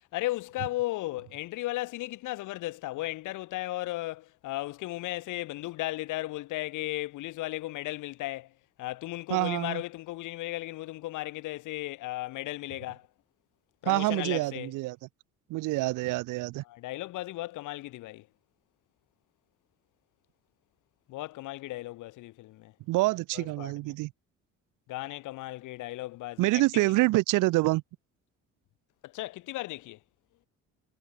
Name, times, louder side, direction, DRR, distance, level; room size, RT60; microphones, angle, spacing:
voice 1, 0.1-8.5 8.8-13.1 13.8-14.7 16.6-18.3 21.1-22.7 23.3-23.7 24.9-26.9 29.0-30.0, left 17 dB, 75° left, 1.3 m, -35 dB
voice 2, 9.3-9.8 13.9-15.0 15.5-16.6 22.9-24.1 26.4-27.8, right 21 dB, 80° right, 0.8 m, -26 dB
cardioid pair, 120°, 31 cm